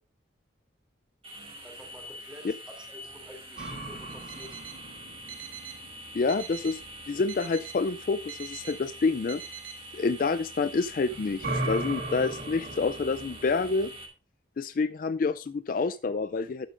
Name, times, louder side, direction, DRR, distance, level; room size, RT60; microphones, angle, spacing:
sound 1, 1.2-14.1, equal, 30° right, 2.1 m, -45 dB
voice 1, 1.6-4.6, left 1 dB, 5° right, 2 dB, 2.8 m, -49 dB
sound 2, 3.6-7.3 10.8-13.9, right 2 dB, 55° right, 2.0 m, -38 dB
Alarm, 4.1-4.8 5.3-5.8 6.3-6.8 7.3-7.8 8.3-8.8 9.3-9.8, right 10 dB, 85° right, 1.4 m, -44 dB
voice 2, 6.1-9.4 9.9-13.9 14.6-16.7, left 4 dB, 45° left, 13 dB, 0.3 m, -28 dB
12.0 x 8.7 x 2.5 m, 0.34 s
head